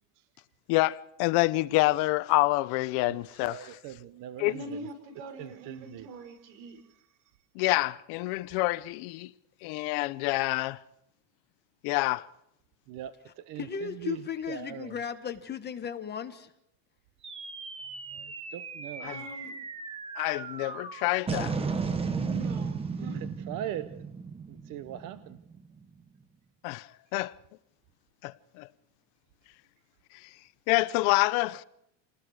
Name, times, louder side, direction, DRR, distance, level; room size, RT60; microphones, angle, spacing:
voice 1, 0.7-3.7 4.4-4.5 7.6-9.3 9.6-10.8 11.8-12.3 19.0-19.2 20.2-21.5 26.6-26.8 27.1-27.3 28.2-28.7 30.7-31.6, left 21 dB, 50° left, 0.7 m, -27 dB
voice 2, 3.0-4.7 5.4-6.1 12.9-14.2 14.5-15.0 18.1-19.1 23.0-24.0 24.5-25.4, right 11 dB, 40° right, 0.9 m, -41 dB
voice 3, 4.4-6.8 19.0-19.6 22.1-23.3, right 1 dB, 80° right, 6.0 m, -43 dB
voice 4, 13.6-16.5, left 7 dB, 20° left, 1.1 m, -35 dB
sound 1, 17.2-25.8, right 5 dB, 10° right, 0.9 m, -35 dB
28.5 x 19.5 x 4.8 m
cardioid pair, 165°, 49 cm